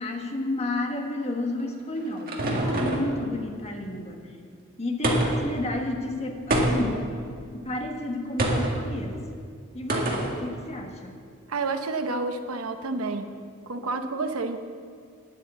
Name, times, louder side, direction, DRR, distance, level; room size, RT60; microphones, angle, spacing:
voice 1, 0.0-4.3 4.8-7.1 7.5-9.2 9.7-11.2, left 1 dB, 30° left, 3 dB, 1.3 m, -31 dB
sound 1, 1.6-3.2 5.0-5.5 6.5-7.0 8.4-8.8 9.9-10.3, right 1 dB, 45° right, 1.9 m, -25 dB
voice 2, 11.5-13.3 13.7-14.6, right 3 dB, 85° right, 7 dB, 0.9 m, -29 dB
10.0 x 9.0 x 7.6 m, 2.2 s
head